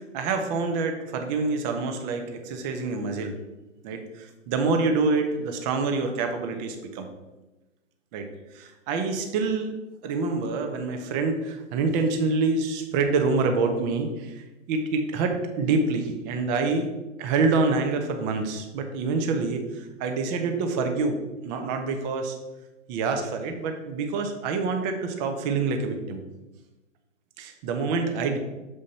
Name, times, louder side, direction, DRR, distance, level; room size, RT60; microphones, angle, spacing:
voice 1, 0.0-3.4 3.8-7.1 8.1-8.3 8.5-9.7 10.0-16.9 17.2-22.4 22.9-26.2 27.4-28.4, right 4 dB, 35° right, 5 dB, 1.2 m, -26 dB
7.4 x 5.0 x 4.2 m, 1.1 s
hypercardioid pair, 120°, 37 cm